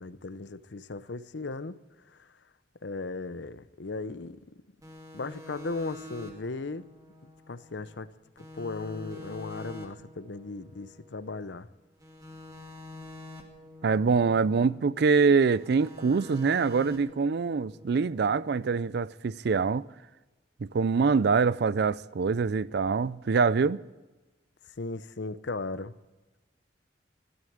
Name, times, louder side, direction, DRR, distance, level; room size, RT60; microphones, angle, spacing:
voice 1, 0.0-1.8 2.1-2.3 2.8-4.4 5.1-6.9 7.2-11.7 14.3-14.4 24.8-25.9, left 3 dB, 75° left, 0.8 m, -37 dB
sound 1, 4.8-8.1 8.4-11.6 12.0-15.2 15.5-18.7, left 2 dB, 20° right, 2.4 m, -47 dB
voice 2, 13.8-19.9 20.7-23.8, right 5 dB, 65° right, 0.4 m, -24 dB
12.5 x 12.5 x 8.7 m
head